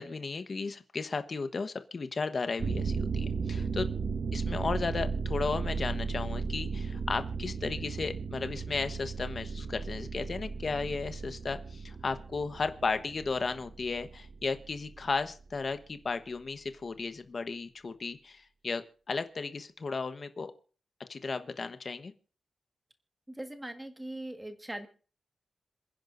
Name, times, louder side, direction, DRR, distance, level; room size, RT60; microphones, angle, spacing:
voice 1, 0.0-3.9 4.3-20.5 21.1-22.1, left 4 dB, 40° left, 9 dB, 1.1 m, -34 dB
sound 1, 2.6-14.7 15.0-15.1, right 5 dB, 55° right, 1.0 m, -35 dB
voice 2, 23.3-24.9, right 1 dB, 10° right, 6 dB, 1.7 m, -40 dB
27.5 x 10.0 x 2.6 m, 0.40 s
wide cardioid pair, 155°, 0 cm